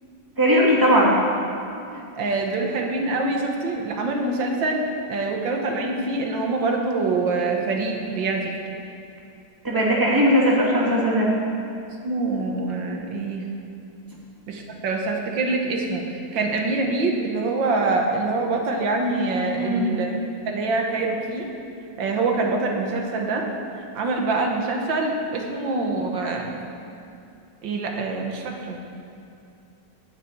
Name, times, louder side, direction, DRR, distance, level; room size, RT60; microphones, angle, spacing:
voice 1, 0.4-1.2 9.6-11.3 19.5-19.9, equal, 10° right, -5 dB, 2.3 m, -19 dB
voice 2, 1.9-8.5 12.0-13.5 14.5-20.1 20.5-21.5 22.0-23.4 23.9-26.6 27.6-28.8, right 3 dB, 85° right, 1 dB, 1.9 m, -25 dB
9.3 x 8.2 x 9.3 m, 2.5 s
omnidirectional pair, 2.0 m